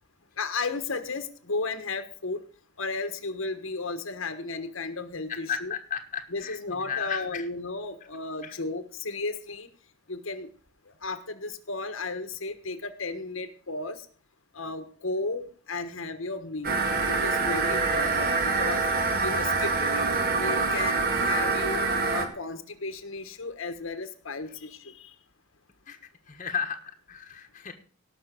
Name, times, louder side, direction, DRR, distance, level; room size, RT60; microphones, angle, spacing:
voice 1, 0.4-2.4 2.8-5.7 6.3-9.7 10.1-10.5 10.9-14.1 14.5-18.8 19.2-25.1, left 3 dB, 70° left, 9 dB, 1.3 m, -34 dB
voice 2, 5.3-7.5 8.4-8.5 25.9-26.0 26.3-27.7, left 7 dB, 35° left, 4 dB, 1.3 m, -34 dB
sound 1, 16.6-22.2, right 4 dB, 45° right, 2.1 m, -25 dB
18.0 x 6.2 x 6.1 m, 0.44 s
head